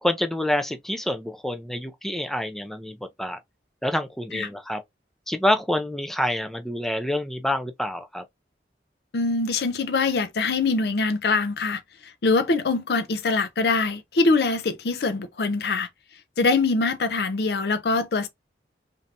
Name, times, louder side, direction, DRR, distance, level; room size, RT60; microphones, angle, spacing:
voice 1, 0.0-3.4 3.8-4.8 5.3-8.2, left 1 dB, ahead, 0.3 m, -27 dB
voice 2, 9.1-15.9 16.4-18.3, left 3 dB, 65° left, 0.5 m, -23 dB
3.2 x 2.6 x 2.6 m
head